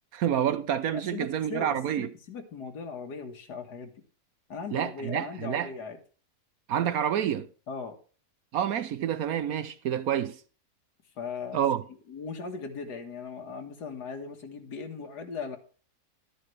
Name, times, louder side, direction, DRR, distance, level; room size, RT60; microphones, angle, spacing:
voice 1, 0.1-2.1 4.7-5.7 6.7-7.5 8.5-10.4 11.5-11.8, right 9 dB, 70° right, 1.1 m, -28 dB
voice 2, 0.9-3.9 4.5-6.0 7.7-8.0 11.2-11.6 12.1-15.6, left 5 dB, 90° left, 2.1 m, -38 dB
12.5 x 10.5 x 3.3 m
omnidirectional pair, 1.7 m